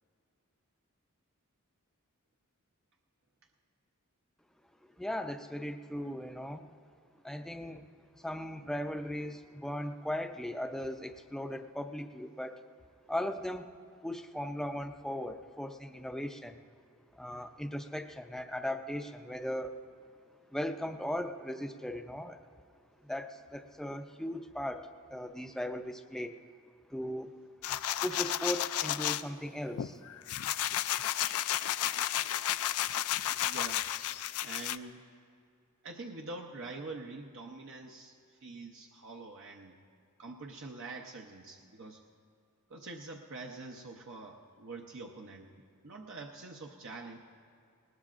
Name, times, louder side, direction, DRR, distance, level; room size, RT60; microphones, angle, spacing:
voice 1, 5.0-6.7 7.2-7.9 8.2-12.6 13.1-13.7 14.0-16.6 17.1-19.8 20.5-22.4 23.0-26.4 26.9-27.3 28.0-30.0, left 1 dB, ahead, 6 dB, 0.5 m, -38 dB
sound 1, 27.6-29.2 29.8-34.8, left 12 dB, 70° left, 0.4 m, -32 dB
voice 2, 33.4-33.9 34.4-35.0 35.8-38.1 38.4-39.7 40.2-42.0 42.7-45.5 45.8-47.2, right 3 dB, 60° right, 1 dB, 0.7 m, -45 dB
20.0 x 19.5 x 2.5 m, 2.4 s
head